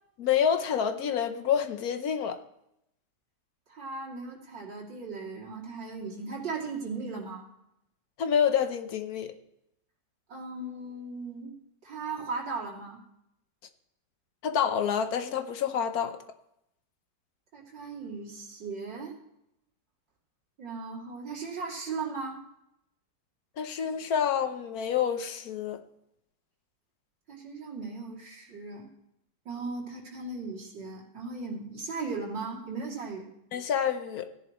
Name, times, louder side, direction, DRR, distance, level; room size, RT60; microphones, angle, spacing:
voice 1, 0.2-2.4 8.2-9.3 14.4-16.2 23.6-25.8 33.5-34.3, left 8 dB, 60° left, 9 dB, 1.2 m, -28 dB
voice 2, 3.7-7.5 10.3-11.5 11.8-13.0 17.5-19.1 20.6-22.4 27.3-28.9 29.4-33.2, right 4 dB, 85° right, -4 dB, 3.4 m, -37 dB
16.0 x 10.5 x 3.0 m, 0.80 s
omnidirectional pair, 1.9 m